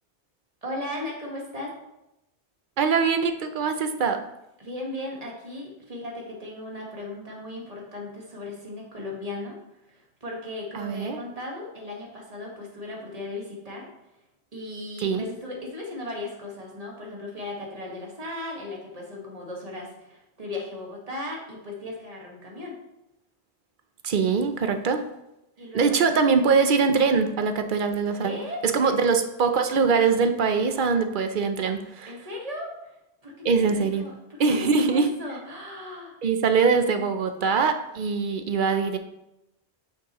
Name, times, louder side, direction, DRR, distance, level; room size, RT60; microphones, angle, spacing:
voice 1, 0.6-1.7 4.6-9.6 9.9-13.9 14.5-22.8 25.6-26.1 28.2-28.9 32.1-33.0 33.2-36.2, left 2 dB, 35° right, -2 dB, 1.7 m, -37 dB
voice 2, 2.8-4.2 10.7-11.2 15.0-15.3 24.0-25.0 25.7-32.1 33.4-34.0 34.4-35.1 36.2-39.0, right 5 dB, 55° right, 8 dB, 0.8 m, -23 dB
8.4 x 6.3 x 3.0 m, 0.89 s
omnidirectional pair, 1.1 m